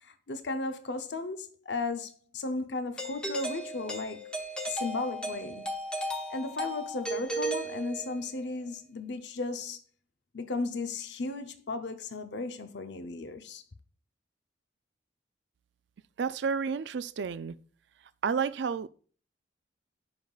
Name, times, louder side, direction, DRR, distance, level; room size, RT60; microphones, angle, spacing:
voice 1, 0.0-4.2 4.7-5.7 6.3-9.8 10.3-13.6, left 3 dB, 65° left, 0.7 m, -35 dB
Doorbell, 3.0-8.4, right 1 dB, 5° left, 0.9 m, -35 dB
voice 2, 16.2-17.5 18.2-18.9, right 6 dB, 70° right, 0.4 m, -30 dB
15.0 x 5.5 x 2.4 m
head